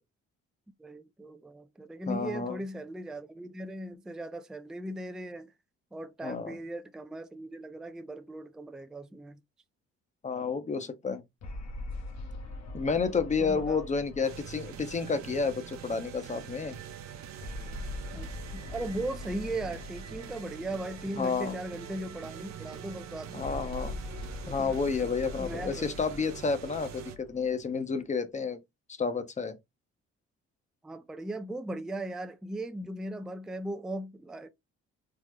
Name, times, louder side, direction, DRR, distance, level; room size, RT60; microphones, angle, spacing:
voice 1, 0.8-5.5 5.9-9.4 13.4-13.9 18.1-23.6 24.4-24.7 25.4-25.9 30.8-34.5, right 1 dB, ahead, 0.3 m, -38 dB
voice 2, 2.1-2.6 6.2-6.5 10.2-11.2 12.7-16.8 21.2-21.5 23.3-24.0 24.4-28.6 29.0-29.6, left 5 dB, 25° left, 0.7 m, -30 dB
sound 1, 11.4-16.0 17.4-21.8 23.4-28.0, left 2 dB, 60° left, 0.9 m, -42 dB
sound 2, 14.2-27.2, right 9 dB, 65° right, 0.6 m, -44 dB
3.6 x 2.1 x 3.1 m
cardioid pair, 90°, 30 cm